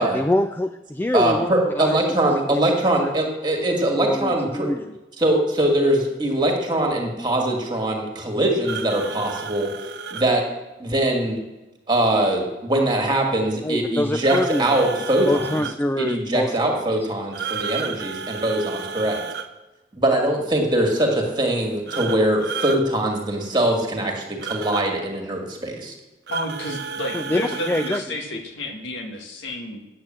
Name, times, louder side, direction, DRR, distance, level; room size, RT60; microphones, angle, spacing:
voice 1, 0.0-2.6 3.0-3.1 4.0-4.9 13.6-16.8 27.1-28.0 28.3-28.4, left 1 dB, 10° left, 8 dB, 0.3 m, -25 dB
voice 2, 1.1-4.7 5.2-9.7 10.1-10.4 10.8-11.4 11.9-15.6 16.0-19.3 19.9-25.9, right 1 dB, 25° right, 1 dB, 1.9 m, -22 dB
sound 1, 8.6-10.3 14.2-15.7 17.3-19.5 21.9-22.8 24.4-24.9 26.3-28.1, right 6 dB, 60° right, 0.7 m, -32 dB
voice 3, 26.3-29.8, left 1 dB, 90° left, 3 dB, 1.6 m, -31 dB
8.7 x 8.6 x 7.5 m, 1.1 s
head